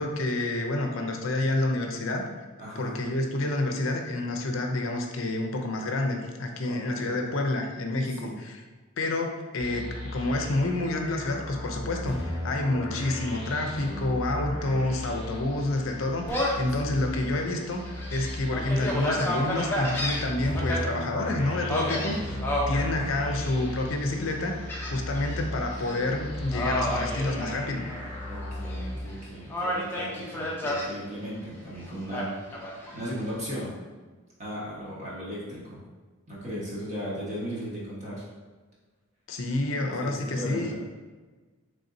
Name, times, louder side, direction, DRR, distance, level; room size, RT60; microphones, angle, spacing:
voice 1, 0.0-2.3 2.8-8.6 9.0-17.8 18.1-24.5 24.8-27.9 39.3-40.7, left 2 dB, 65° left, 3 dB, 0.5 m, -28 dB
voice 2, 2.6-3.0 6.6-7.2 8.1-8.4 14.4-14.9 16.8-17.0 28.3-32.3 32.9-33.7 34.4-35.8 36.3-38.2 39.9-40.7, equal, 35° right, -7 dB, 1.2 m, -37 dB
sound 1, 9.6-29.0, left 1 dB, 25° left, 1.0 m, -36 dB
Gull seagull, 16.3-16.7 17.2-17.3 17.8-20.8 21.7-22.8 23.4-23.8 24.7-25.4 25.7-26.0 26.5-28.1 28.4-29.1 29.5-30.9 32.1-33.1, left 1 dB, 10° left, 0.5 m, -31 dB
4.0 x 3.4 x 2.6 m, 1.3 s
head